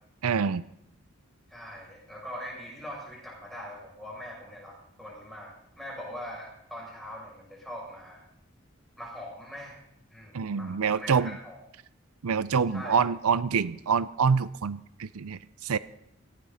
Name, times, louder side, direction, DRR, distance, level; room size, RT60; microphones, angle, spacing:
voice 1, 0.2-0.6 10.3-11.4 12.2-15.8, right 6 dB, 80° right, 17 dB, 0.5 m, -26 dB
voice 2, 1.5-8.2 9.0-9.8 10.1-11.6 12.7-13.0, equal, ahead, -4 dB, 6.9 m, -42 dB
18.0 x 17.0 x 4.1 m, 0.76 s
head